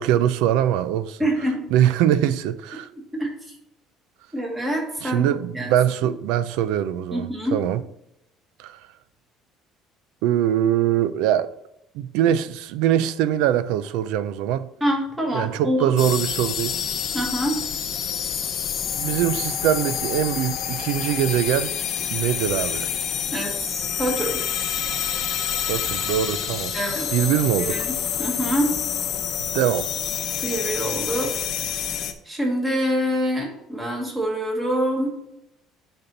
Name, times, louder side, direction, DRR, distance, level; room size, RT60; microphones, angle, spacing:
voice 1, 0.0-1.2 1.7-2.9 5.0-7.8 8.6-8.8 10.2-11.5 11.9-14.7 15.3-16.8 18.9-21.7 22.1-22.9 25.7-26.8 27.1-27.8 29.5-29.9, right 11 dB, 80° right, 0.5 m, -22 dB
voice 2, 1.2-1.6 2.9-3.5 4.3-5.8 7.1-7.6 14.8-15.9 17.1-17.6 23.3-23.5 24.0-24.4 26.7-27.1 27.6-28.8 30.4-31.3 31.9-32.0 32.2-35.2, equal, 10° right, 1.6 m, -25 dB
sound 1, 16.0-32.1, left 9 dB, 45° left, 0.7 m, -27 dB
10.0 x 4.3 x 4.0 m
cardioid pair, 175°, 0 cm